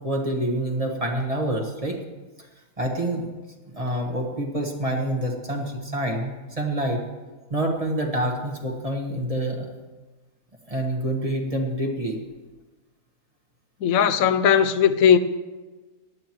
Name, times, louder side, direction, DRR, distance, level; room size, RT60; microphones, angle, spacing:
voice 1, 0.0-2.0 2.8-3.2 3.6-7.0 7.5-9.7 10.7-12.2, right 1 dB, 25° right, 1.3 m, -27 dB
voice 2, 13.8-15.2, left 8 dB, 70° left, 1.1 m, -18 dB
17.5 x 11.0 x 3.1 m
omnidirectional pair, 1.6 m